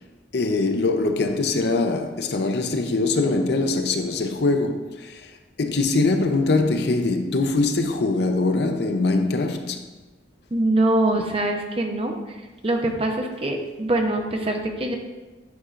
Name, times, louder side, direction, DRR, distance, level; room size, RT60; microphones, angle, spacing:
voice 1, 0.3-5.3 5.6-9.8, left 3 dB, 65° left, 0.6 m, -22 dB
voice 2, 10.5-12.1 12.6-14.9, right 1 dB, 35° right, 0.7 m, -23 dB
9.4 x 5.6 x 2.5 m
head